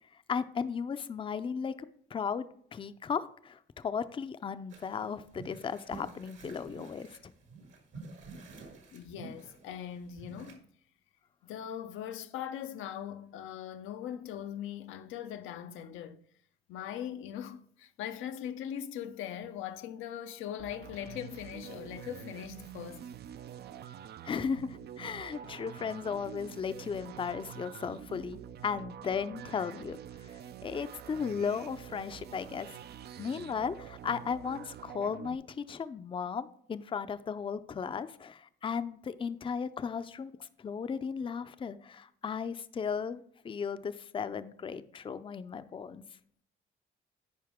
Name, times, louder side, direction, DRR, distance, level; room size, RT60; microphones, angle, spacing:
voice 1, 0.3-1.7 2.1-2.5 2.7-7.3 24.2-32.8 33.2-40.3 40.6-46.0, left 6 dB, 25° left, 0.4 m, -36 dB
sound 1, 4.7-10.5, right 4 dB, 70° right, 2.0 m, -49 dB
voice 2, 8.9-10.6 11.4-16.2 16.7-23.1 40.4-40.5, left 10 dB, 85° left, 0.6 m, -40 dB
sound 2, 20.6-35.4, right 10 dB, 55° right, 0.4 m, -47 dB
9.6 x 5.2 x 3.6 m
cardioid pair, 90°, 20 cm